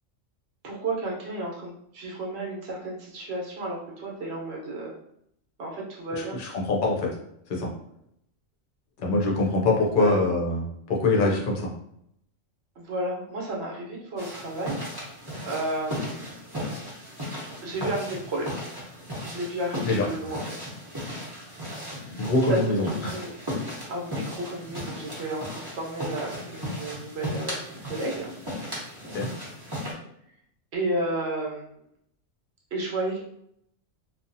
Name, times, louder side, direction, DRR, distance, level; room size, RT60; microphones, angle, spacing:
voice 1, 0.6-4.9 5.6-6.4 10.0-10.2 12.8-14.9 15.4-16.2 17.6-18.5 19.2-20.6 21.9-22.1 22.5-23.3 23.9-28.3 30.7-31.6 32.7-33.2, right 1 dB, 60° right, -1 dB, 0.9 m, -32 dB
voice 2, 6.4-7.1 7.5-7.7 9.0-11.7 19.8-20.1 22.2-23.1 29.1-29.3, left 2 dB, 50° left, -1 dB, 0.7 m, -24 dB
sound 1, 14.2-29.9, equal, 20° right, 0.7 m, -36 dB
2.8 x 2.2 x 2.6 m, 0.73 s
omnidirectional pair, 1.3 m